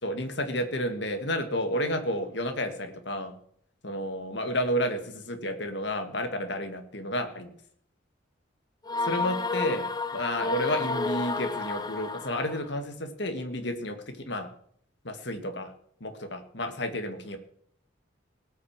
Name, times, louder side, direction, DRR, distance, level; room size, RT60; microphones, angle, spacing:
voice 1, 0.0-3.3 3.8-7.5 9.0-9.9 10.1-14.5 15.0-15.7 16.0-17.4, equal, 60° left, 7 dB, 1.9 m, -31 dB
sound 1, 8.9-12.7, left 3 dB, 20° left, 0.9 m, -31 dB
19.0 x 6.6 x 7.3 m, 0.65 s
head